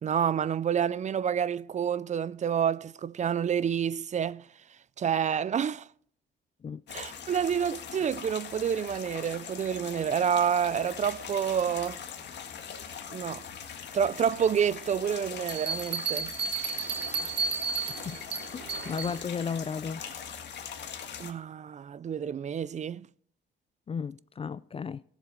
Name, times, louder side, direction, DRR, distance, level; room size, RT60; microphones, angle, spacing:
voice 1, 0.0-4.5 5.0-5.9 6.9-12.0 13.1-13.4 13.9-16.3 21.2-23.1, right 8 dB, 35° right, 0.4 m, -28 dB
sound 1, 6.9-21.3, left 7 dB, 60° left, 1.7 m, -42 dB
Bell, 15.5-19.2, right 6 dB, 55° right, 1.7 m, -32 dB
sound 2, 16.3-20.4, right 5 dB, 85° right, 2.5 m, -51 dB
voice 2, 18.5-20.0 23.9-25.0, left 6 dB, 30° left, 0.4 m, -34 dB
16.0 x 7.3 x 5.1 m
cardioid pair, 90°, 20 cm